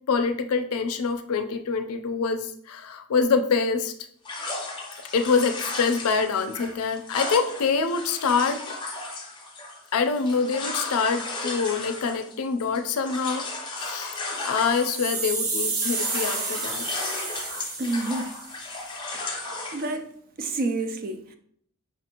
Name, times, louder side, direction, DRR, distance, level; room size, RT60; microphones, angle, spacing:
voice 1, 0.1-3.9 5.1-8.6 9.9-14.1 14.4-16.9, left 5 dB, 80° left, 0.4 m, -25 dB
sound 1, 4.2-15.3 15.6-19.9, left 2 dB, 20° left, 0.6 m, -35 dB
sound 2, 14.4-18.6, right 3 dB, 75° right, 1.2 m, -31 dB
voice 2, 17.8-18.4 19.1-20.1 20.4-21.3, right 2 dB, 40° right, 0.3 m, -30 dB
5.2 x 2.5 x 2.8 m
head